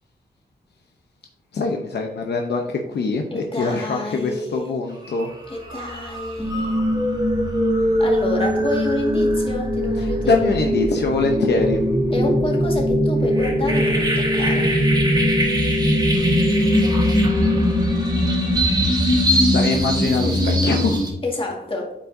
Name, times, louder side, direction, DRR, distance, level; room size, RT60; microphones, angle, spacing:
voice 1, 1.5-5.3 10.2-11.8 19.5-21.0, left 4 dB, 75° left, 2 dB, 0.7 m, -23 dB
voice 2, 3.3-4.7 5.5-6.8 8.0-10.5 12.1-14.8 21.2-21.9, left 2 dB, 30° left, 0 dB, 1.8 m, -28 dB
sound 1, 5.0-5.3 5.6-21.1, equal, 20° right, 1.6 m, -22 dB
sound 2, 6.4-18.4, equal, 5° right, 0.7 m, -23 dB
8.7 x 4.8 x 2.6 m, 0.84 s
cardioid pair, 80°, 18 cm